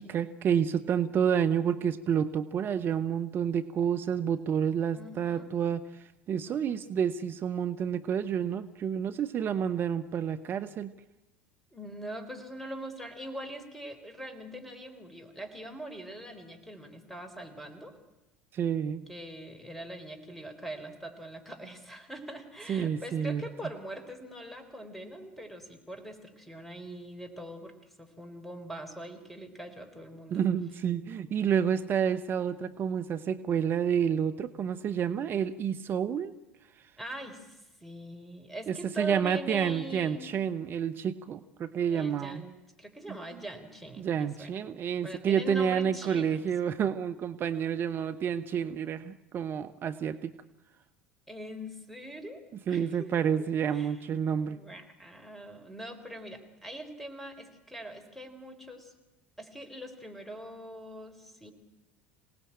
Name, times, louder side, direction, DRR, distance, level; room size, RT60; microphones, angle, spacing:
voice 1, 0.0-10.9 18.5-19.0 22.7-23.4 30.3-36.3 38.7-42.4 43.1-43.4 44.0-50.3 52.7-54.6, right 8 dB, 35° right, 9 dB, 1.0 m, -29 dB
voice 2, 4.9-5.5 6.4-6.8 11.7-18.0 19.1-30.4 37.0-40.3 41.9-42.5 42.8-44.6 45.0-46.5 51.3-52.4 52.7-53.3 53.7-54.0 54.4-58.9 59.4-61.5, right 1 dB, ahead, 8 dB, 4.3 m, -42 dB
27.0 x 18.0 x 8.8 m, 1.0 s
figure-of-eight pair, 70°, 6 cm